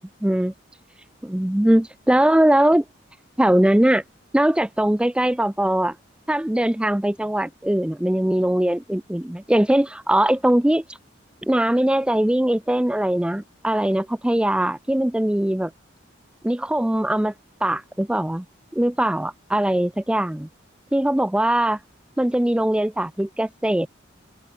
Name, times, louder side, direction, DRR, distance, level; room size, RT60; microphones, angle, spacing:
voice 1, 0.2-0.5 1.2-2.8 3.4-4.0 4.3-6.0 6.3-10.8 11.4-15.7 16.4-17.3 17.6-18.4 18.7-20.5 20.9-21.8 22.2-23.9, right 1 dB, 5° right, 0.3 m, -21 dB
head